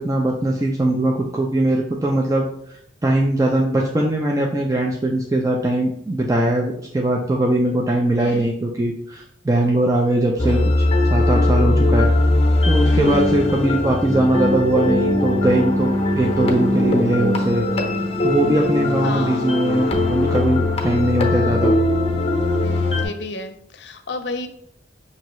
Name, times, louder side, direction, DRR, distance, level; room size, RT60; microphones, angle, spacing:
voice 1, 0.0-2.5 3.0-10.8 11.1-12.1 12.7-17.7 18.2-21.8, right 1 dB, 20° right, -1 dB, 0.4 m, -20 dB
sound 1, 10.4-23.1, left 2 dB, 35° left, 0.8 m, -20 dB
voice 2, 12.8-13.3 19.0-19.5 22.6-24.5, left 3 dB, 70° left, 8 dB, 0.6 m, -32 dB
6.1 x 2.7 x 3.0 m, 0.71 s
head